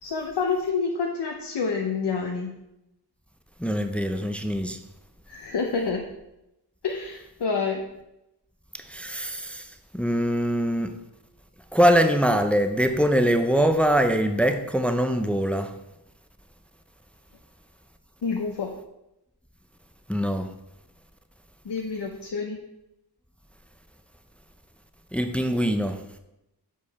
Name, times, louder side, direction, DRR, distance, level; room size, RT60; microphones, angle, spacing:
voice 1, 0.0-2.5 5.3-6.0 6.8-7.8 18.2-18.7 21.6-22.6, left 5 dB, 80° left, 0.8 m, -28 dB
voice 2, 3.6-4.8 8.7-9.7 9.9-10.9 11.7-15.7 20.1-20.5 25.1-26.0, equal, 5° left, 0.5 m, -23 dB
7.4 x 4.7 x 4.1 m
wide cardioid pair, 90°, 41 cm